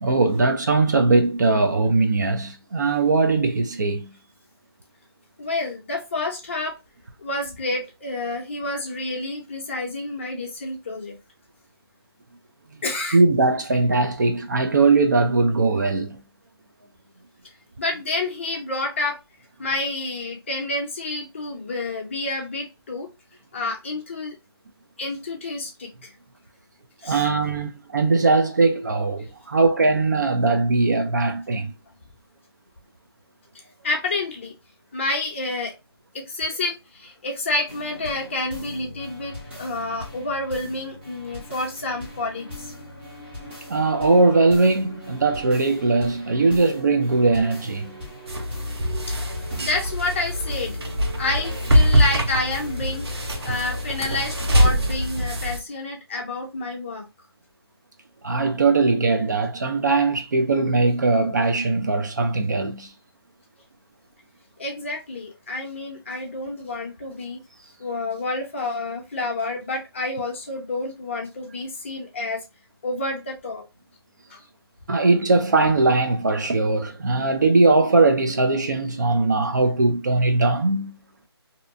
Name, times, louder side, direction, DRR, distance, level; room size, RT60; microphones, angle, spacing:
voice 1, 0.0-4.1 13.1-16.2 27.0-31.7 43.7-47.9 58.2-62.9 74.9-80.9, right 3 dB, 45° right, 0.4 m, -20 dB
voice 2, 5.4-6.7 7.2-11.2 12.8-13.2 17.8-19.2 19.6-23.1 23.5-24.3 25.0-26.1 27.0-27.3 33.8-34.5 34.9-35.7 36.1-42.7 49.6-50.8 51.2-57.0 64.6-67.4 67.8-72.4 72.8-73.6 74.3-74.4, left 2 dB, 30° left, 0.7 m, -29 dB
sound 1, 37.7-55.1, equal, 25° right, 1.0 m, -40 dB
sound 2, 48.3-55.6, equal, 75° right, 0.8 m, -23 dB
2.7 x 2.1 x 2.5 m
figure-of-eight pair, 165°, 14 cm